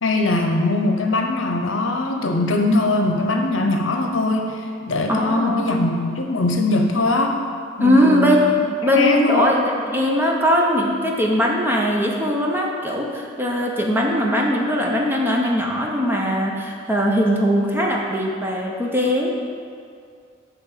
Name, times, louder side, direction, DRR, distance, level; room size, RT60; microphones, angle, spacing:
voice 1, 0.0-7.4 7.8-8.4 8.8-9.5, left 2 dB, 70° left, 3 dB, 0.8 m, -21 dB
voice 2, 5.1-5.8 7.8-8.6 8.8-19.3, equal, 10° right, -1 dB, 0.8 m, -20 dB
9.9 x 3.5 x 6.6 m, 2.3 s
head